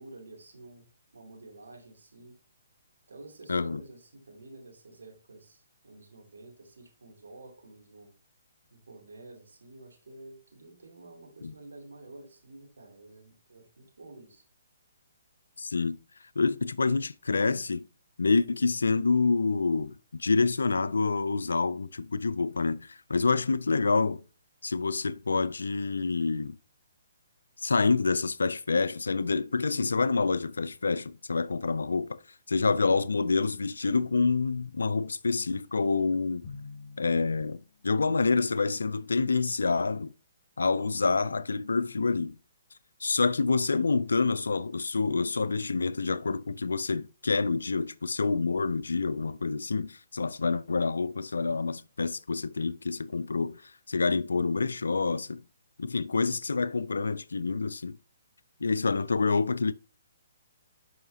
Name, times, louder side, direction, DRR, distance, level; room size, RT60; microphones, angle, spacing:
voice 1, 0.0-2.4 3.1-8.1 8.7-14.4, right 2 dB, 80° right, 2.6 m, -50 dB
voice 2, 3.5-3.8 11.4-11.5 15.6-16.0 16.4-17.9 18.2-24.2 24.6-26.6 27.6-32.2 32.5-36.5 37.0-40.1 40.6-42.4 43.0-55.4 55.8-58.0 58.6-59.7, left 4 dB, 80° left, 0.3 m, -27 dB
Drum, 36.4-38.2, left 4 dB, 35° left, 2.7 m, -47 dB
7.7 x 5.6 x 2.7 m
hypercardioid pair, 140°, 0 cm